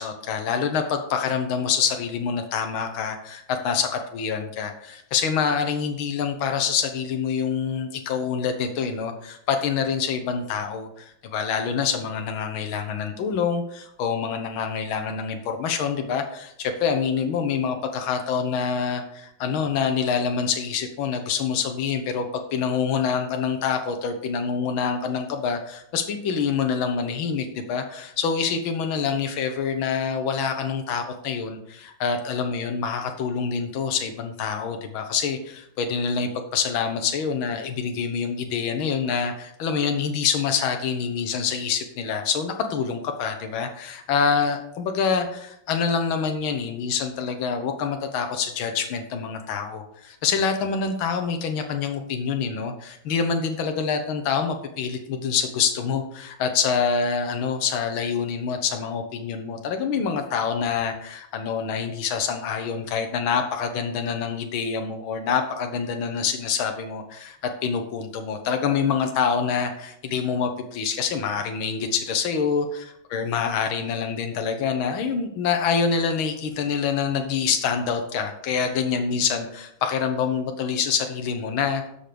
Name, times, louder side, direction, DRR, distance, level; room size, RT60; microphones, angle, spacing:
voice 1, 0.0-67.4 67.6-81.9, left 6 dB, 80° left, 5 dB, 1.8 m, -26 dB
12.0 x 5.9 x 5.1 m, 0.74 s
omnidirectional pair, 2.2 m